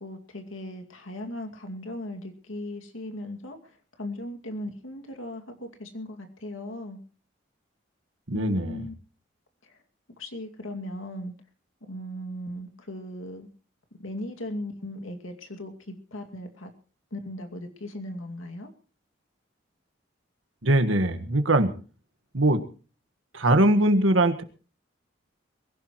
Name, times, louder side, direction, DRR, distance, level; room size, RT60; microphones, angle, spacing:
voice 1, 0.0-3.6 4.0-7.0 8.3-8.9 10.2-11.3 11.9-13.5 14.0-16.7 17.1-18.7, left 1 dB, 90° left, 4 dB, 2.4 m, -37 dB
voice 2, 8.3-8.9 20.6-21.7 22.3-22.6 23.3-24.4, right 1 dB, 85° right, 8 dB, 1.6 m, -21 dB
22.5 x 16.0 x 3.1 m, 0.38 s
head